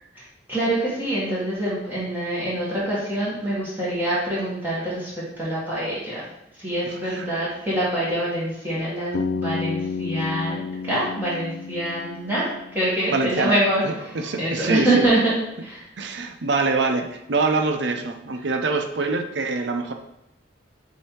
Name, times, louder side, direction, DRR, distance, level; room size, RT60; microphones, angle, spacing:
voice 1, 0.1-5.1 5.4-6.2 6.5-12.4 12.7-15.3 15.6-15.8, right 1 dB, 10° right, -9 dB, 1.6 m, -25 dB
voice 2, 6.8-7.3 13.1-13.6 13.8-15.1 16.0-19.9, right 3 dB, 70° right, 5 dB, 0.7 m, -25 dB
Bass guitar, 9.1-13.2, left 4 dB, 85° left, 0.4 m, -31 dB
7.8 x 2.8 x 4.6 m, 0.85 s
head